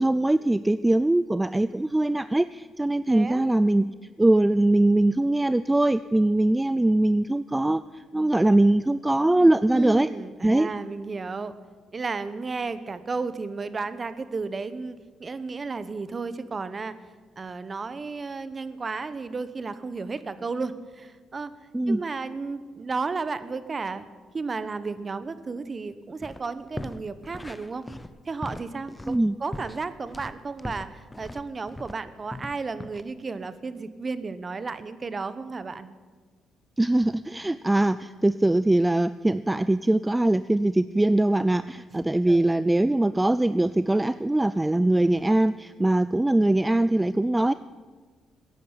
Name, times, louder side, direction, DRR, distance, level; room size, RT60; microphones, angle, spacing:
voice 1, 0.0-10.1 10.4-10.7 21.7-22.0 29.1-29.4 36.8-47.5, right 1 dB, 10° right, 14 dB, 0.4 m, -22 dB
voice 2, 3.1-3.5 9.7-11.5 11.9-17.0 17.4-21.5 21.9-24.1 24.3-27.8 28.2-35.9 42.3-42.5, right 4 dB, 35° right, 14 dB, 1.0 m, -33 dB
sound 1, 26.2-26.4 26.7-32.0 32.3-33.0, left 1 dB, 10° left, 0.8 m, -39 dB
15.5 x 10.0 x 8.7 m, 1.4 s
cardioid pair, 90°, 0 cm